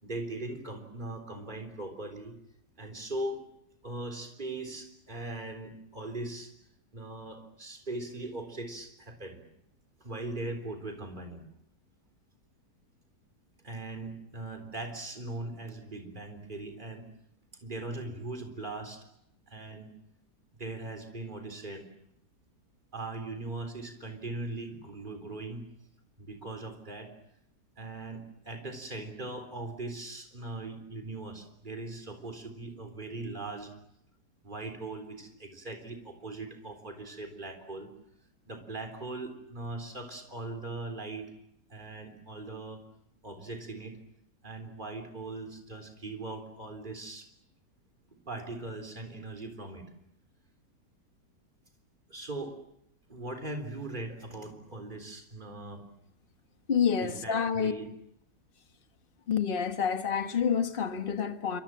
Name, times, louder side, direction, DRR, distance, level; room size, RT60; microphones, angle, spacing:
voice 1, 0.0-2.4 2.8-3.4 3.8-6.5 6.9-9.4 10.0-11.4 13.6-17.1 17.6-19.1 19.5-19.9 20.6-21.8 22.9-25.7 26.2-27.1 27.8-33.7 34.4-37.9 38.5-41.3 41.7-42.8 43.2-44.0 44.4-47.3 48.3-49.9 52.1-52.6 53.1-55.8 57.0-57.9, right 2 dB, 25° right, 4.0 m, -40 dB
voice 2, 56.7-57.7 59.3-61.6, left 7 dB, 35° left, 1.5 m, -28 dB
27.5 x 25.5 x 7.5 m
omnidirectional pair, 1.8 m